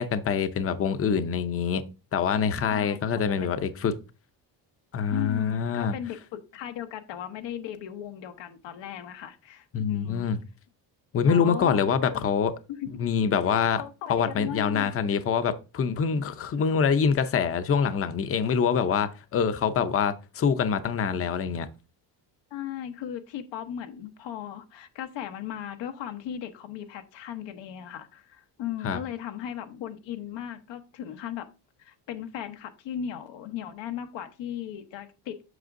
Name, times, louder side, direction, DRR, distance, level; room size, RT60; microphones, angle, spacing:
voice 1, 0.0-1.8 2.1-3.9 4.9-6.0 9.7-10.4 11.1-12.5 13.0-13.8 14.1-21.7 28.8-29.0, left 6 dB, 35° left, 0.6 m, -25 dB
voice 2, 2.7-3.0 3.3-3.5 5.1-10.3 11.2-12.2 12.7-13.1 13.8-15.2 22.5-31.5 31.8-35.4, left 10 dB, 85° left, 0.9 m, -37 dB
7.8 x 6.1 x 2.5 m
cardioid pair, 150°, 43 cm